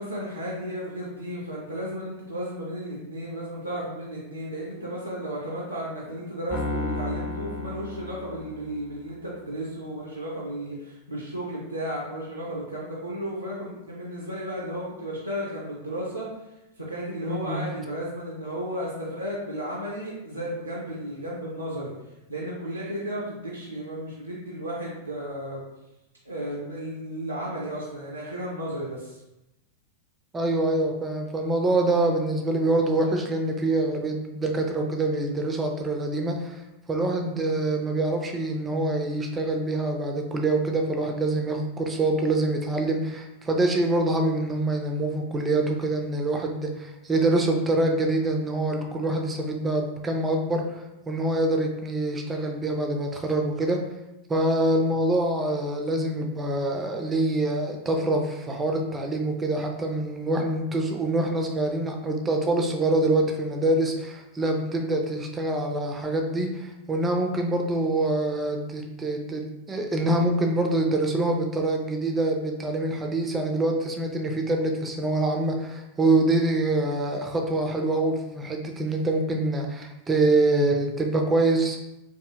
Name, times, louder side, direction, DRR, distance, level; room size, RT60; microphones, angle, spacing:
voice 1, 0.0-16.3 16.8-21.9 22.3-25.6 26.2-29.2, equal, 85° right, -5 dB, 0.5 m, -34 dB
Piano, 6.5-8.9, left 2 dB, 30° left, 0.8 m, -33 dB
voice 2, 17.3-17.6 30.3-36.6 36.9-53.8 54.3-81.8, right 2 dB, 15° right, 3 dB, 0.4 m, -25 dB
2.7 x 2.6 x 2.3 m, 0.94 s
figure-of-eight pair, 90°, 0 cm